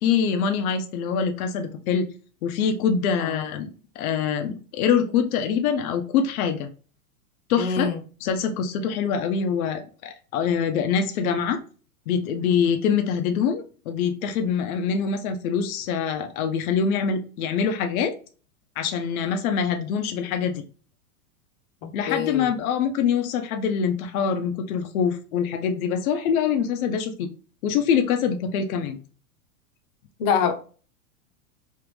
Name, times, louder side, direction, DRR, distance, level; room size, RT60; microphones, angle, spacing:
voice 1, 0.0-2.1 2.4-3.7 4.0-6.7 7.5-7.9 8.2-11.6 12.1-18.1 18.8-20.6 21.9-27.3 27.6-29.0, left 7 dB, 70° left, 0.7 m, -24 dB
voice 2, 3.2-3.5 7.6-8.0 21.8-22.5 30.2-30.5, left 6 dB, 35° left, 0.7 m, -25 dB
3.2 x 2.5 x 3.4 m
supercardioid pair, 140°, 44 cm